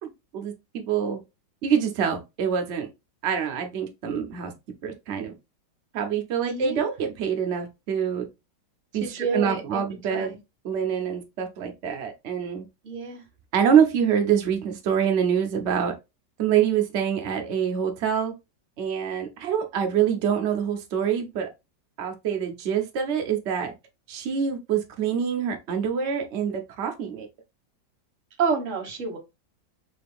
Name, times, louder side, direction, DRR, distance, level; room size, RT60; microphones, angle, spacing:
voice 1, 0.0-1.2 1.6-2.9 3.2-4.5 4.8-5.3 5.9-8.3 8.9-10.4 10.6-12.6 13.5-15.9 16.4-18.3 18.8-21.5 22.0-23.7 24.1-27.3, right 8 dB, 85° right, 0.6 m, -25 dB
voice 2, 6.4-6.9 9.0-9.8 10.1-10.4 12.8-13.2 28.4-29.2, right 5 dB, 50° right, 1.3 m, -29 dB
3.8 x 2.5 x 3.4 m
omnidirectional pair, 2.0 m